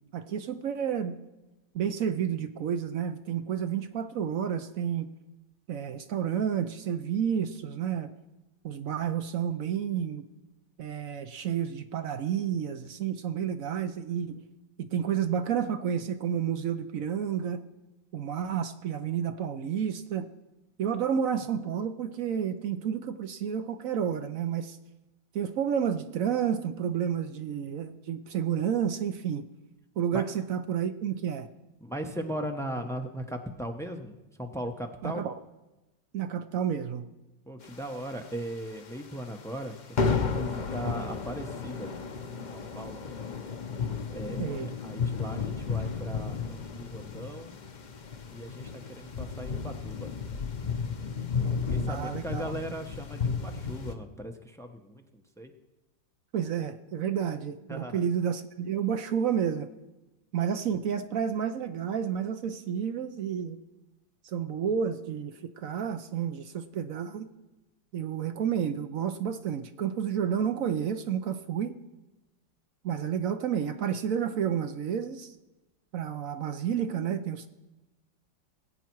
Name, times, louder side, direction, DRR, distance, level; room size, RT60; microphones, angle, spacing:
voice 1, 0.1-1.2 1.7-5.1 5.7-8.1 8.6-10.3 10.8-14.5 14.8-17.7 18.1-20.3 20.8-24.8 25.3-29.4 30.0-31.5 35.0-35.3 36.1-37.1 44.4-44.7 51.9-52.5 56.3-59.7 60.3-63.6 64.2-67.3 67.9-71.8 72.8-75.3 75.9-77.5, right 8 dB, 65° right, 9 dB, 0.9 m, -30 dB
voice 2, 31.8-35.2 37.5-39.8 40.0-41.9 42.5-43.0 44.1-47.6 48.3-50.1 51.5-55.5 57.7-58.1, right 1 dB, 5° left, 4 dB, 0.3 m, -38 dB
sound 1, 37.8-38.7 39.0-39.2 39.5-39.7 40.0-53.9, left 5 dB, 90° left, 0.4 m, -33 dB
19.5 x 8.3 x 4.6 m, 1.0 s
omnidirectional pair, 1.9 m